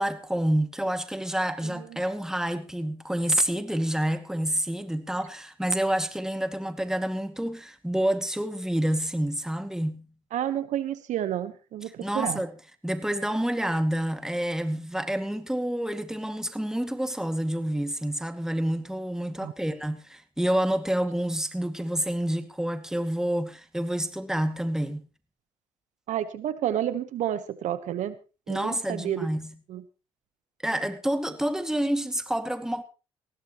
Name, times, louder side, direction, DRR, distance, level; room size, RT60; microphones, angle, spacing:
voice 1, 0.0-10.1 12.0-12.5 12.8-25.0 28.5-29.6 30.6-32.8, right 1 dB, 5° right, 2.2 m, -28 dB
voice 2, 10.3-12.4 19.4-19.5 26.1-28.1 28.5-29.3 29.7-29.8, right 11 dB, 65° right, 1.2 m, -30 dB
20.0 x 16.0 x 3.1 m
supercardioid pair, 70°, 13 cm